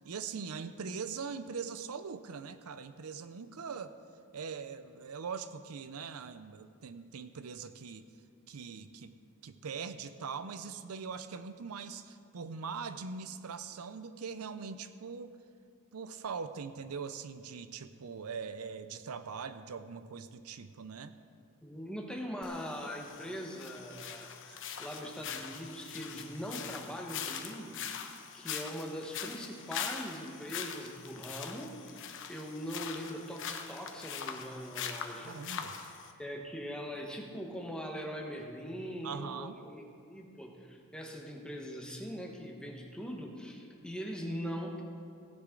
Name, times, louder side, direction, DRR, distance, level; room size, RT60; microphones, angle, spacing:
voice 1, 0.0-4.0 4.3-8.0 8.5-9.1 9.4-15.3 15.9-21.1 35.2-35.9 39.0-39.6, right 5 dB, 80° right, 11 dB, 0.5 m, -42 dB
voice 2, 21.6-28.0 28.3-35.4 36.2-44.8, equal, 5° left, 0 dB, 1.3 m, -41 dB
sound 1, 22.4-36.1, left 7 dB, 60° left, 0.9 m, -42 dB
16.5 x 9.7 x 3.8 m, 2.3 s
head